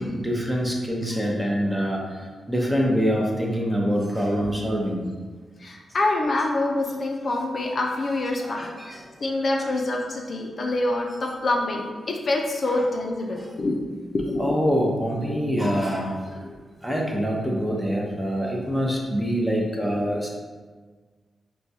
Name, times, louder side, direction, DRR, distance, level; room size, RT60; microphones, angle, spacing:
voice 1, 0.0-2.0 2.5-5.0 8.4-8.9 14.4-16.2 16.8-20.3, equal, 5° right, -2 dB, 0.7 m, -25 dB
voice 2, 5.6-13.8 14.1-14.6 15.2-15.6 16.4-16.5, left 2 dB, 55° left, 0 dB, 0.5 m, -26 dB
4.5 x 2.2 x 2.7 m, 1.4 s
cardioid pair, 75°, 0 cm